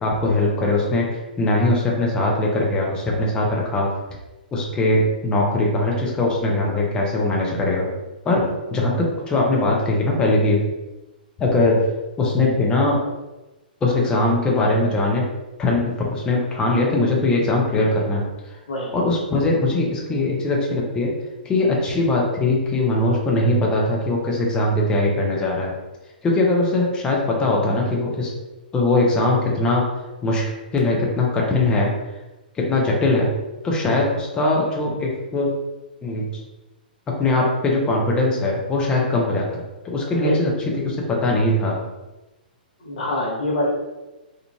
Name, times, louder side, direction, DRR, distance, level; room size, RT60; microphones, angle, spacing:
voice 1, 0.0-3.9 4.5-7.9 8.2-10.6 11.4-11.8 12.2-13.0 13.8-15.2 15.6-18.2 18.9-21.1 21.4-25.7 26.2-28.3 28.7-29.8 30.2-30.4 30.7-31.9 32.6-33.3 33.6-35.5 36.0-36.3 37.2-40.5 40.8-41.8, left 2 dB, 15° left, -2 dB, 0.6 m, -21 dB
voice 2, 42.8-43.7, left 1 dB, 60° left, -6 dB, 1.1 m, -24 dB
2.9 x 2.5 x 2.3 m, 1.1 s
figure-of-eight pair, 115°, 5 cm